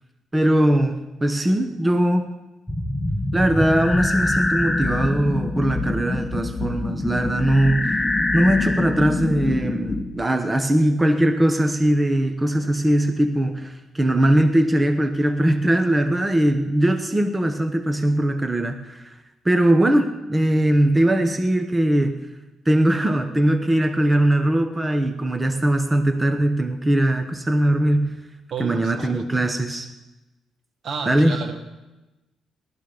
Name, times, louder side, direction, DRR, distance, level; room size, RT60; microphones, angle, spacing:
voice 1, 0.3-2.3 3.3-7.9 8.3-19.2 19.4-22.2 22.6-28.2 28.6-29.9 31.1-31.4, right 1 dB, 15° right, 7 dB, 1.1 m, -20 dB
sound 1, 2.7-10.1, left 2 dB, 15° left, 1.4 m, -25 dB
voice 2, 28.5-29.4 30.8-31.8, right 5 dB, 60° right, 6 dB, 1.8 m, -32 dB
19.0 x 13.0 x 5.2 m, 1.1 s
cardioid pair, 90°, 0 cm